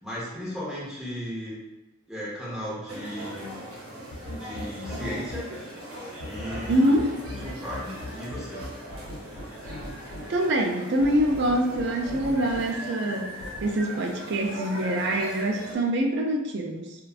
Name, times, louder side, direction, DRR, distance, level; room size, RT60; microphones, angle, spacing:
voice 1, 0.0-1.6 2.1-3.5 4.3-5.5 6.2-6.9 7.4-8.6, equal, ahead, -9 dB, 0.7 m, -36 dB
sound 1, 2.9-15.8, right 1 dB, 85° right, 0.7 m, -39 dB
sound 2, 4.1-5.4 6.2-10.2 11.0-12.6 13.4-13.7, left 2 dB, 65° left, 0.4 m, -38 dB
voice 2, 6.7-7.1 10.3-13.3 13.6-17.0, right 1 dB, 50° right, 2 dB, 0.3 m, -25 dB
2.4 x 2.2 x 2.3 m, 1.0 s
head